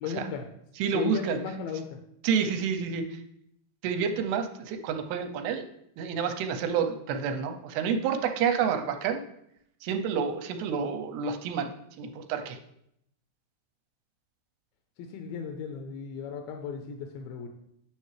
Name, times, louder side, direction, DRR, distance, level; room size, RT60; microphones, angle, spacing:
voice 1, 0.0-0.5 0.9-2.0 15.0-17.5, left 6 dB, 80° left, 4 dB, 2.2 m, -35 dB
voice 2, 0.8-1.4 2.2-3.0 3.8-5.6 6.0-9.2 9.8-11.7 12.0-12.6, right 7 dB, 80° right, 6 dB, 2.7 m, -29 dB
9.6 x 6.6 x 3.2 m, 0.75 s
omnidirectional pair, 4.8 m